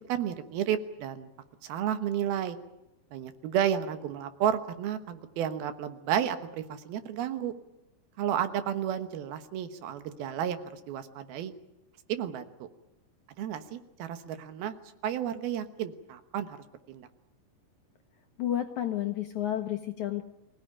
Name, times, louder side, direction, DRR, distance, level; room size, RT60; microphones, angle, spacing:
voice 1, 0.1-1.3 1.6-2.6 3.1-7.5 8.2-11.5 12.1-12.7 13.4-14.8 15.0-16.6 16.9-17.1, right 9 dB, 75° right, 10 dB, 3.1 m, -32 dB
voice 2, 18.4-20.2, left 11 dB, 70° left, 6 dB, 1.9 m, -31 dB
24.5 x 17.5 x 9.9 m, 0.91 s
omnidirectional pair, 4.5 m